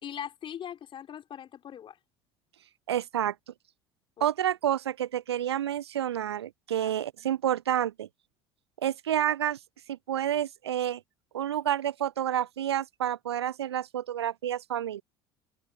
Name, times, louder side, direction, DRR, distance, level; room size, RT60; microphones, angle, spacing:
voice 1, 0.0-2.0 4.2-4.3 6.8-6.9, left 9 dB, 40° left, 4.6 m, -40 dB
voice 2, 2.9-3.3 4.2-8.1 8.8-9.6 9.9-11.0 11.3-15.0, right 11 dB, 75° right, 0.6 m, -29 dB
figure-of-eight pair, 65°, 14 cm